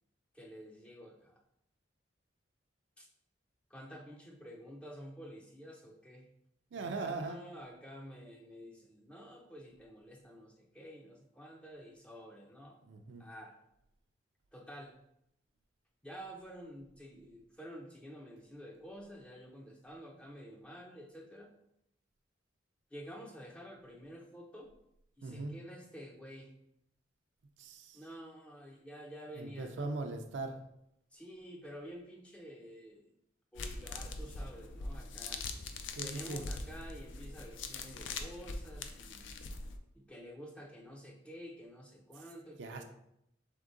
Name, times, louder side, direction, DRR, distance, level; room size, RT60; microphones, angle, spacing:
voice 1, 0.3-1.4 3.0-3.1 3.7-6.3 6.7-12.8 13.2-13.5 14.5-15.0 16.0-21.5 22.9-24.8 25.2-26.6 27.9-29.9 31.1-33.1 33.5-35.4 36.0-39.3 40.0-42.8, equal, 5° left, 0 dB, 0.4 m, -50 dB
voice 2, 6.7-7.4 12.8-13.2 25.2-25.5 27.6-28.0 29.4-30.6 36.0-36.4 42.6-42.8, right 3 dB, 65° right, 5 dB, 0.4 m, -40 dB
sound 1, 33.6-39.8, left 3 dB, 75° left, 0.4 m, -42 dB
3.6 x 3.5 x 3.8 m, 0.80 s
head